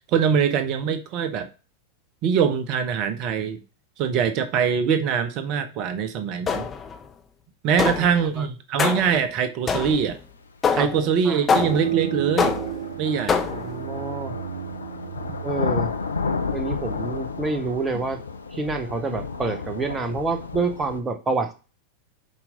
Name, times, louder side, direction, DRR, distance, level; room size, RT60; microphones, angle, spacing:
voice 1, 0.1-1.5 2.2-3.6 4.0-6.7 7.6-10.2 10.7-12.6 13.0-13.5, right 7 dB, 40° right, 0.9 m, -23 dB
sound 1, 6.5-7.0 7.8-8.2 8.8-9.2 9.7-10.1 10.6-11.0 11.5-12.0 12.4-12.8 13.3-13.7, left 5 dB, 20° left, 0.8 m, -24 dB
sound 2, 10.4-10.5 11.5-21.0, left 4 dB, 75° left, 0.6 m, -32 dB
sound 3, 11.5-16.9, right 10 dB, 70° right, 0.4 m, -33 dB
voice 2, 13.5-14.4 15.4-15.9 16.5-18.2 18.5-21.5, right 3 dB, 15° right, 1.1 m, -27 dB
7.3 x 4.7 x 3.9 m
figure-of-eight pair, 90°, 0 cm